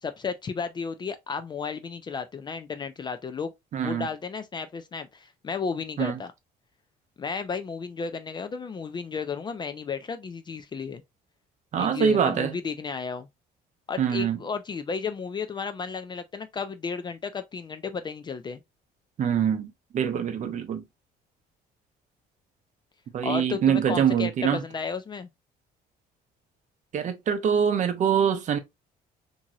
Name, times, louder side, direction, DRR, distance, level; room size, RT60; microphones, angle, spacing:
voice 1, 0.0-3.5 3.8-6.3 7.2-11.0 11.8-13.3 13.9-18.6 23.2-25.3, left 5 dB, 25° left, 0.3 m, -33 dB
voice 2, 3.7-4.1 6.0-6.1 11.7-12.5 14.0-14.4 19.2-20.8 23.1-24.6 26.9-28.6, right 8 dB, 45° right, 0.6 m, -24 dB
2.9 x 2.6 x 2.3 m
cardioid pair, 110°, 17 cm